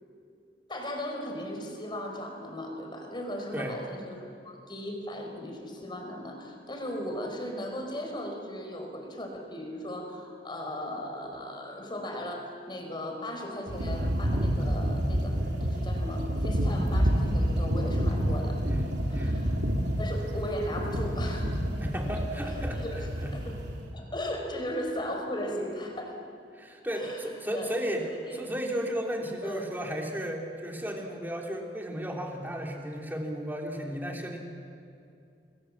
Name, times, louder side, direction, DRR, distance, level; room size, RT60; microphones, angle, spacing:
voice 1, 0.7-15.3 15.6-18.6 19.1-19.5 20.0-21.6 22.3-23.1 23.3-23.5 23.9-26.2 27.0-27.2 27.5-27.7 28.3-28.4 29.4-29.7, left 1 dB, 25° left, 3 dB, 4.4 m, -37 dB
sound 1, 13.7-23.8, equal, 80° right, 3.1 m, -28 dB
voice 2, 18.6-19.4 21.8-22.8 23.2-23.3 26.5-28.0 28.3-34.4, equal, 10° right, 0 dB, 3.1 m, -34 dB
28.0 x 21.0 x 7.4 m, 2.5 s
head